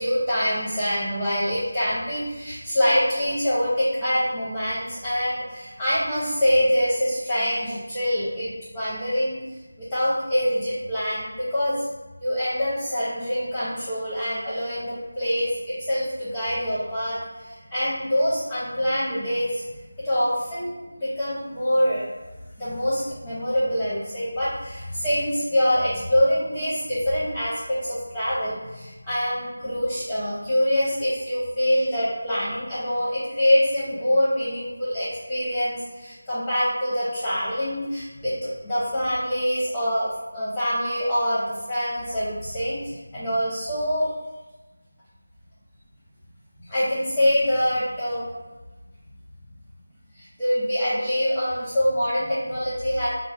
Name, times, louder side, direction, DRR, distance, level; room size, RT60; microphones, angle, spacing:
voice 1, 0.0-9.4 9.8-11.9 12.2-19.6 20.0-22.1 22.6-44.1 46.7-48.2 50.2-53.1, equal, 10° left, -10 dB, 0.9 m, -25 dB
4.2 x 2.0 x 3.5 m, 1.1 s
figure-of-eight pair, 165°, 0 cm